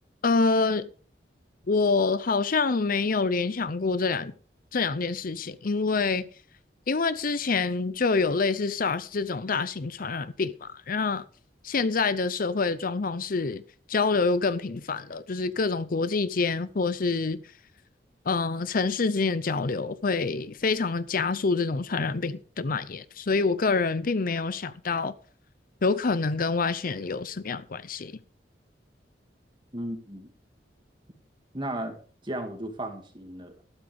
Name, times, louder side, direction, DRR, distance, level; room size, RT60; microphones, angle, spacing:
voice 1, 0.2-0.9 1.7-4.3 4.7-6.3 6.9-11.2 11.6-13.6 13.9-17.4 18.3-25.1 25.8-28.1, left 4 dB, 50° left, 0.7 m, -26 dB
voice 2, 29.7-30.3 31.5-32.0 32.2-33.5, right 1 dB, 30° right, 2.4 m, -34 dB
13.0 x 12.0 x 3.5 m
head